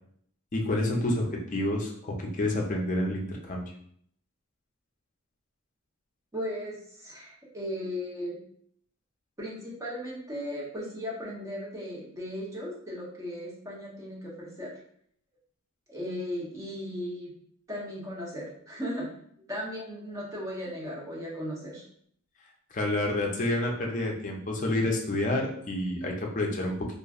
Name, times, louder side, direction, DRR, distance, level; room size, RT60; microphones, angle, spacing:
voice 1, 0.5-3.6 22.7-26.7, left 1 dB, 35° left, 0 dB, 0.5 m, -29 dB
voice 2, 6.3-8.4 9.4-14.7 15.9-17.3 17.7-19.1 19.5-21.8, equal, 15° right, -5 dB, 0.7 m, -36 dB
3.0 x 2.4 x 2.3 m, 0.65 s
head